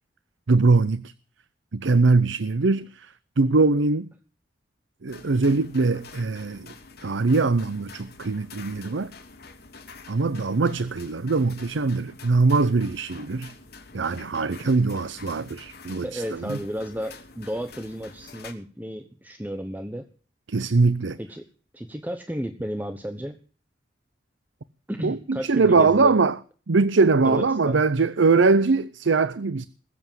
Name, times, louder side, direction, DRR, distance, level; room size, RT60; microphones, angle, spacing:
voice 1, 0.5-1.1 1.7-4.1 5.0-6.7 7.0-9.1 10.1-13.5 13.9-16.6 20.5-21.2 25.0-26.4 26.7-29.7, right 3 dB, 80° right, 0.7 m, -22 dB
sound 1, 5.1-18.5, left 4 dB, 55° left, 3.1 m, -47 dB
voice 2, 16.0-20.1 21.2-21.4 21.7-23.4 24.9-26.1 27.2-27.8, equal, 10° right, 1.0 m, -33 dB
20.5 x 8.0 x 7.4 m
head